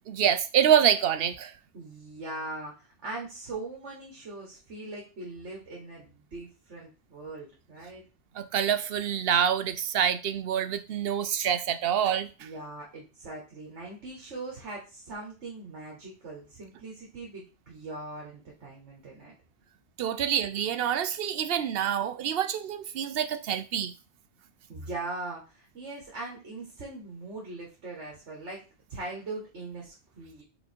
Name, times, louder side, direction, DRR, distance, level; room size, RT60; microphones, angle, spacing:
voice 1, 0.1-1.5 8.4-12.5 20.0-23.9, right 9 dB, 60° right, 0.8 m, -26 dB
voice 2, 1.7-8.0 12.4-19.3 24.7-28.6 28.9-30.4, right 2 dB, 75° right, 1.8 m, -40 dB
5.5 x 4.0 x 4.4 m
omnidirectional pair, 1.2 m